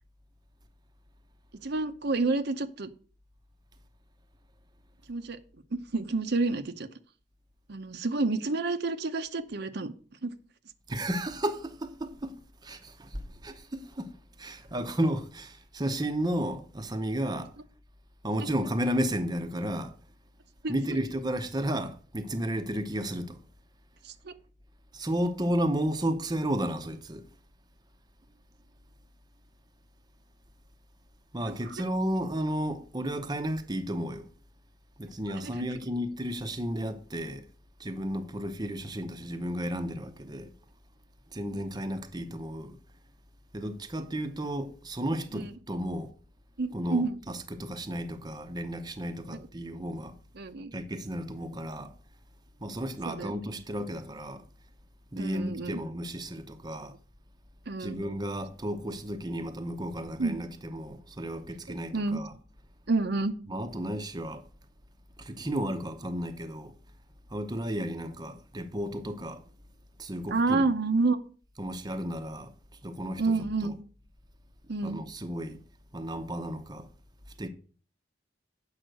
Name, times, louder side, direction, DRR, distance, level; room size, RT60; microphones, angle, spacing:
voice 1, 1.6-2.9 5.1-5.4 5.7-6.9 7.7-9.9 10.2-10.3 18.4-18.5 20.6-21.0 24.0-24.3 35.3-35.5 45.3-45.5 46.6-47.2 49.3-49.4 50.4-50.7 53.0-53.6 55.2-55.8 57.7-58.0 60.2-60.4 61.9-62.2 62.9-63.3 70.3-71.2 73.2-73.8 74.7-75.0, right 3 dB, 60° right, 0.8 m, -29 dB
voice 2, 10.9-12.4 12.6-17.5 18.2-20.0 20.7-23.4 24.9-27.2 31.3-34.3 35.0-37.5 37.8-40.5 41.3-42.8 43.5-46.1 46.7-50.2 50.7-51.9 52.6-54.4 55.1-57.0 57.8-62.3 63.5-64.4 65.2-66.7 67.3-69.4 70.0-70.6 71.6-72.5 72.8-73.7 74.8-75.6 75.9-76.9 77.4-77.5, equal, 20° right, 0.8 m, -33 dB
8.0 x 5.7 x 7.6 m
head